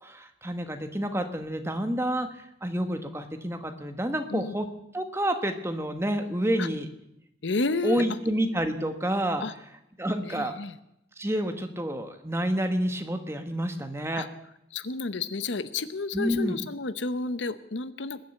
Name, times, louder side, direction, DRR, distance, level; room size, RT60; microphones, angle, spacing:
voice 1, 0.0-4.6 4.9-6.9 7.8-9.4 10.0-10.6 11.2-14.3 16.1-16.6, right 1 dB, 15° right, 7 dB, 1.4 m, -29 dB
voice 2, 7.4-8.0 9.4-9.5 10.2-10.8 14.1-14.3 14.7-18.2, left 3 dB, 75° left, 13 dB, 0.8 m, -31 dB
20.5 x 7.6 x 9.0 m, 0.80 s
head